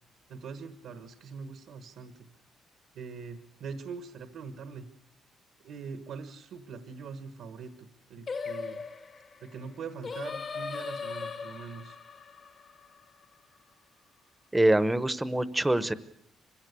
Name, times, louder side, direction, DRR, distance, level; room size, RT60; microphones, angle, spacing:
voice 1, 0.3-2.3 2.9-4.9 5.6-8.8 9.4-12.0, right 5 dB, 75° right, 10 dB, 1.5 m, -42 dB
Singing, 8.3-13.6, left 5 dB, 40° left, 1.1 m, -39 dB
voice 2, 14.5-15.9, right 1 dB, 10° right, 16 dB, 0.9 m, -24 dB
25.0 x 16.5 x 8.3 m, 0.73 s
cardioid pair, 135°, 0 cm